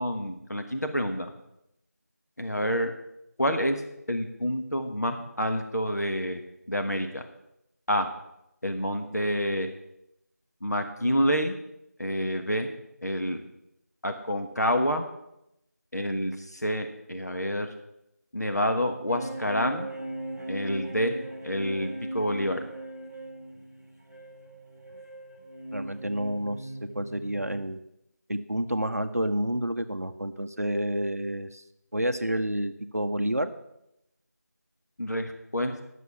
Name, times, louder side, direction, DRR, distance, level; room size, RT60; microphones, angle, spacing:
voice 1, 0.0-1.3 2.4-2.9 3.4-3.8 4.1-6.4 6.7-7.2 7.9-8.1 8.6-9.7 10.6-11.6 12.0-12.7 13.0-13.4 14.0-15.1 15.9-17.7 18.3-19.9 20.5-21.2 21.4-22.6 35.0-35.7, equal, 70° left, 5 dB, 1.3 m, -28 dB
sound 1, 19.1-27.6, right 1 dB, 15° left, 2.0 m, -39 dB
voice 2, 25.7-26.6 26.9-27.8 28.3-31.6 31.9-33.5, right 1 dB, 60° right, 8 dB, 0.8 m, -29 dB
11.0 x 6.7 x 6.8 m, 0.84 s
figure-of-eight pair, 180°, 9 cm